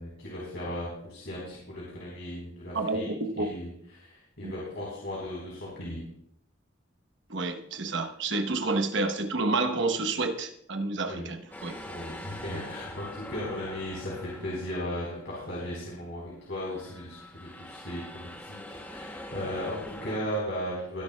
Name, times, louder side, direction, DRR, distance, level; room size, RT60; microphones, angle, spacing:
voice 1, 0.0-3.1 3.4-6.0 11.1-11.3 11.8-21.0, left 1 dB, 65° left, -5 dB, 4.0 m, -36 dB
voice 2, 2.7-3.5 4.4-4.5 7.3-11.8 12.5-12.6, right 3 dB, 60° right, 7 dB, 1.0 m, -29 dB
sound 1, 11.5-16.1 16.5-20.2, left 1 dB, 10° left, 0.9 m, -44 dB
20.0 x 11.0 x 2.3 m, 0.74 s
head